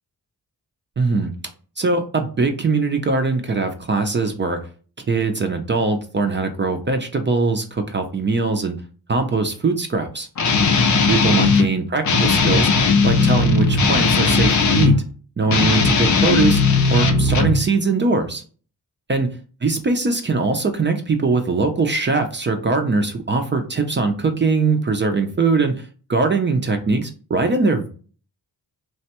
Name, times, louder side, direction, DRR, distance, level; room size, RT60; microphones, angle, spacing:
voice 1, 1.0-1.3 1.8-4.6 5.1-8.8 9.1-10.3 10.9-12.7 13.0-14.9 15.4-16.6 16.9-18.4 19.1-19.3 19.6-27.9, right 3 dB, 30° right, 5 dB, 0.4 m, -21 dB
Guitar, 10.4-11.7 12.0-15.0 15.4-17.6, left 4 dB, 50° left, 0.5 m, -17 dB
3.2 x 2.1 x 2.8 m, 0.39 s
cardioid pair, 85°, 39 cm